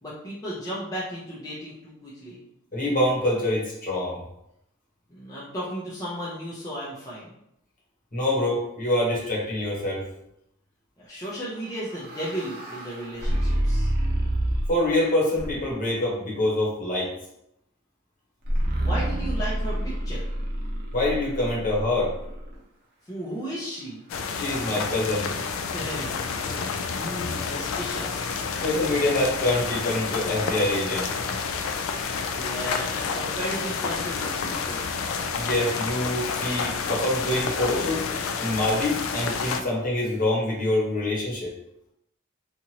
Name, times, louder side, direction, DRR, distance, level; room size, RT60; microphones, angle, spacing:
voice 1, 0.0-2.4 5.1-7.3 11.0-13.9 18.8-20.2 23.1-24.0 25.7-28.4 32.3-34.8, equal, 20° left, -8 dB, 0.5 m, -35 dB
voice 2, 2.7-4.2 8.1-10.1 14.7-17.1 20.9-22.1 24.3-25.3 28.6-31.1 35.4-38.0 38.4-41.5, left 1 dB, 45° left, -4 dB, 1.0 m, -25 dB
sound 1, 11.5-14.9 15.3-15.9 18.4-22.5, right 1 dB, 55° right, 0.7 m, -28 dB
sound 2, 24.1-39.6, left 5 dB, 75° left, 0.3 m, -29 dB
2.9 x 2.5 x 2.8 m, 0.79 s
head